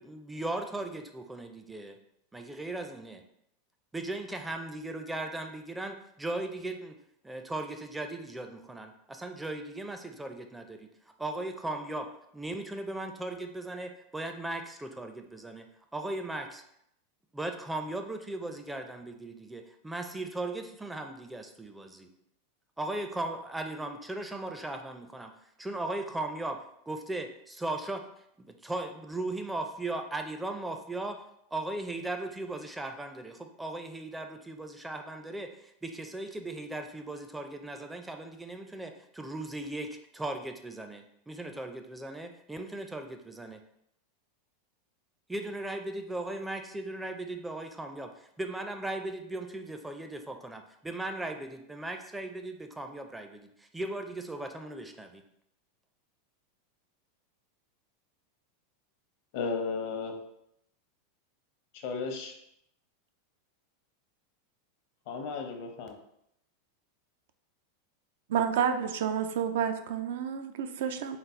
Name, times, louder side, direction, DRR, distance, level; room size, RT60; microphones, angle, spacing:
voice 1, 0.0-2.0 2.3-3.2 3.9-7.0 7.2-10.9 11.2-15.7 15.9-16.6 17.3-22.1 22.8-25.3 25.6-28.0 28.4-31.2 31.5-43.6 45.3-48.1 48.4-55.2, right 2 dB, 10° right, 6 dB, 0.4 m, -37 dB
voice 2, 59.3-60.2 61.8-62.3 65.1-66.0, left 4 dB, 65° left, 4 dB, 0.7 m, -34 dB
voice 3, 68.3-71.2, right 8 dB, 75° right, 8 dB, 0.4 m, -30 dB
4.0 x 2.0 x 4.3 m, 0.76 s
hypercardioid pair, 115°, 0 cm